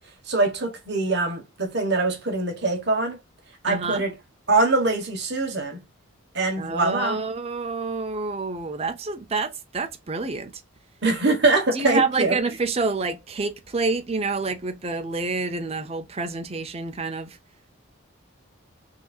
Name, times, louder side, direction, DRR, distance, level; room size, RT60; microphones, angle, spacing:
voice 1, 0.3-3.2 3.6-4.1 4.5-5.8 6.3-7.2 11.0-12.4, right 3 dB, 50° right, 1.3 m, -23 dB
voice 2, 3.6-4.1 6.6-10.6 11.7-17.4, right 4 dB, 30° right, 0.6 m, -28 dB
4.9 x 2.7 x 2.4 m
head